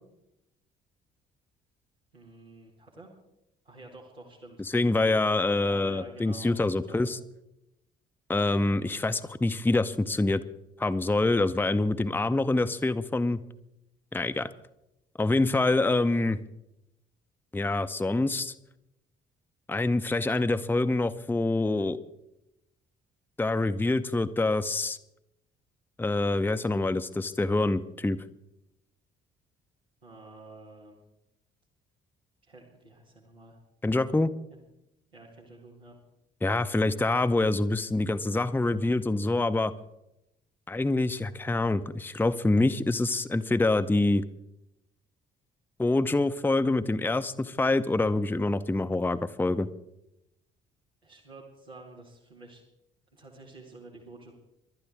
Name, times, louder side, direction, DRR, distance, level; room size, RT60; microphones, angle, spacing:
voice 1, 2.1-3.1 3.6-4.6 5.6-7.0 30.0-31.0 32.4-33.6 34.5-34.6 35.1-36.0 51.0-52.6 53.1-54.3, right 2 dB, 90° right, -6 dB, 1.9 m, -49 dB
voice 2, 4.7-7.2 8.3-10.4 10.8-13.4 14.1-14.5 15.2-16.4 17.5-18.5 19.7-22.0 23.4-25.0 26.0-28.2 33.8-34.3 36.4-39.7 40.7-44.2 45.8-49.7, left 2 dB, 5° left, 10 dB, 0.7 m, -26 dB
28.5 x 12.0 x 3.5 m, 0.87 s
figure-of-eight pair, 45°, 30 cm